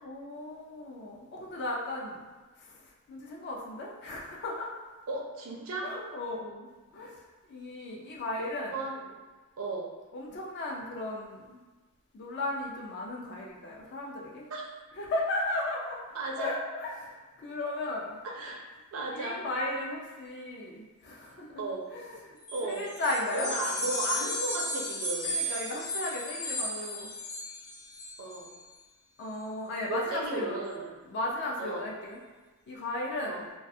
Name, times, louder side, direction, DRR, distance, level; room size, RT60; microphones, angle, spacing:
voice 1, 0.0-2.3 2.6-2.8 3.1-4.7 5.8-6.7 6.9-7.2 7.5-8.7 10.1-11.6 12.1-14.5 15.0-16.0 16.4-18.2 19.1-21.7 21.9-22.4 22.6-23.6 25.2-27.1 29.2-30.6 31.1-32.2 32.7-33.5, left 2 dB, 50° left, -3 dB, 0.4 m, -35 dB
voice 2, 5.1-6.0 8.7-9.1 9.6-9.9 14.5-14.6 16.1-16.5 18.2-18.6 18.9-19.4 21.6-21.8 22.5-22.8 23.3-25.3 28.2-28.5 29.9-30.9 31.6-31.8 33.2-33.5, right 2 dB, 70° right, 0 dB, 0.4 m, -35 dB
sound 1, 22.4-28.6, left 1 dB, 80° left, 0.7 m, -35 dB
2.3 x 2.2 x 2.6 m, 1.3 s
head